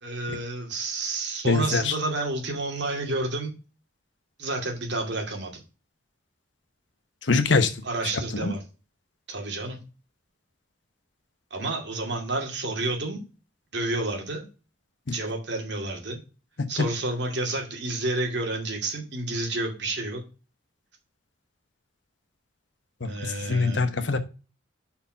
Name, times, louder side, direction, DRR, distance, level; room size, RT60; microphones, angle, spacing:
voice 1, 0.0-3.5 4.4-5.6 7.8-8.6 9.3-9.8 11.5-13.3 13.7-14.5 15.1-16.2 16.7-20.2 23.1-23.8, right 2 dB, 65° right, 1 dB, 2.4 m, -30 dB
voice 2, 1.4-1.9 7.2-7.7 8.4-8.5 15.1-15.2 23.0-24.2, left 4 dB, 75° left, 10 dB, 1.0 m, -23 dB
5.5 x 4.6 x 5.8 m, 0.32 s
head